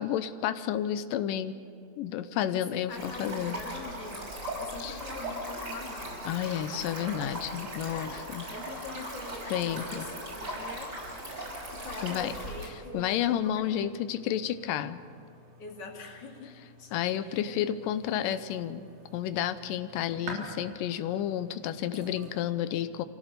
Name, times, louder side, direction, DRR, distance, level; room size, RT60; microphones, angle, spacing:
voice 1, 0.0-1.5 2.0-3.6 4.8-5.0 6.3-8.5 9.5-10.1 12.0-12.3 12.9-15.0 16.9-18.9 19.1-23.0, left 10 dB, 90° left, 11 dB, 2.4 m, -31 dB
voice 2, 2.5-4.3 4.6-6.9 7.9-8.2 8.5-11.1 11.7-14.0 15.6-16.9 17.2-17.7, left 3 dB, 35° left, 0 dB, 3.0 m, -44 dB
Stream, 2.9-12.7, right 1 dB, 30° right, 6.1 m, -39 dB
sound 1, 12.4-22.4, right 1 dB, 90° right, 5.2 m, -49 dB
25.0 x 16.5 x 6.8 m, 2.7 s
omnidirectional pair, 3.8 m